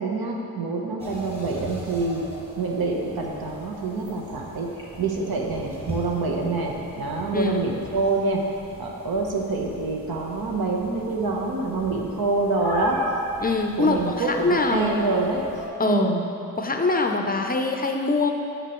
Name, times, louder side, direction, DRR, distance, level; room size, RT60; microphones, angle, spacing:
voice 1, 0.0-2.2 2.6-4.7 5.0-8.4 8.8-13.0 13.8-15.4 15.8-16.2, right 3 dB, 80° right, 0 dB, 1.0 m, -26 dB
sound 1, 1.0-15.7, equal, 15° right, 1.5 m, -37 dB
voice 2, 13.4-15.0 15.8-16.1 16.6-18.3, left 3 dB, 25° left, 3 dB, 0.4 m, -23 dB
8.0 x 6.6 x 3.0 m, 2.7 s
cardioid pair, 95°, 36 cm